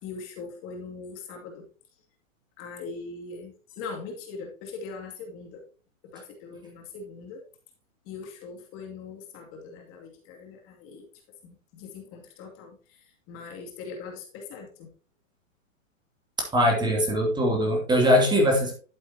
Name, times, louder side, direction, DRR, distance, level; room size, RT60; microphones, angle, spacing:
voice 1, 0.0-1.6 2.6-5.6 6.1-7.4 8.1-11.1 11.4-14.9, left 4 dB, 35° left, 1 dB, 2.5 m, -41 dB
voice 2, 16.4-18.7, equal, 10° right, 1 dB, 2.7 m, -22 dB
12.0 x 7.9 x 2.8 m, 0.37 s
hypercardioid pair, 130°, 40 cm